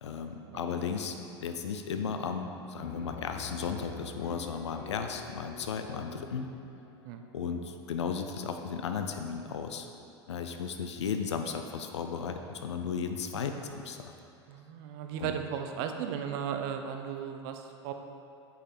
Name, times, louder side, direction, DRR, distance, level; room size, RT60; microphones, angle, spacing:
voice 1, 0.0-1.2 1.4-6.5 7.3-9.9 10.3-14.1 15.2-15.3, left 6 dB, 75° left, 6 dB, 0.5 m, -35 dB
Piano, 2.8-8.3, left 5 dB, 45° left, 1.0 m, -47 dB
voice 2, 14.5-17.9, right 8 dB, 55° right, 6 dB, 0.7 m, -36 dB
8.1 x 5.5 x 4.4 m, 2.7 s
figure-of-eight pair, 80°, 15 cm